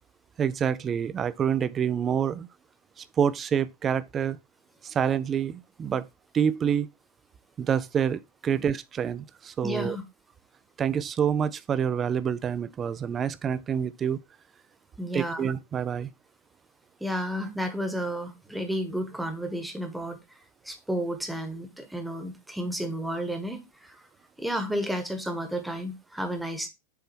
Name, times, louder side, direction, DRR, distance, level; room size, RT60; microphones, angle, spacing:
voice 1, 0.4-2.5 3.0-4.4 4.8-6.1 6.3-6.9 7.6-10.0 10.8-14.2 15.1-16.1, right 8 dB, 25° right, 0.5 m, -27 dB
voice 2, 9.6-10.0 15.0-15.5 17.0-20.2 20.6-24.0 24.4-26.7, equal, 5° right, 1.3 m, -32 dB
6.9 x 3.3 x 4.4 m
figure-of-eight pair, 90°, 0 cm